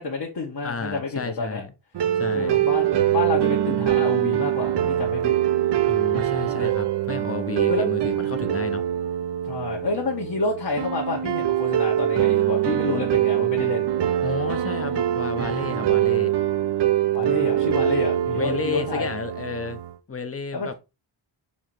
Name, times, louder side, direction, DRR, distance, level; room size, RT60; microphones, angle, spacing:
voice 1, 0.0-1.6 2.3-5.3 7.7-7.9 9.4-13.9 17.1-19.1 20.5-20.7, left 3 dB, 50° left, 1.7 m, -28 dB
voice 2, 0.6-1.7 2.1-2.6 5.9-8.8 14.2-16.3 18.3-19.8 20.1-20.7, left 5 dB, 30° left, 1.0 m, -32 dB
sound 1, 1.9-20.0, right 11 dB, 60° right, 0.7 m, -23 dB
7.1 x 3.1 x 4.5 m
wide cardioid pair, 130°, 47 cm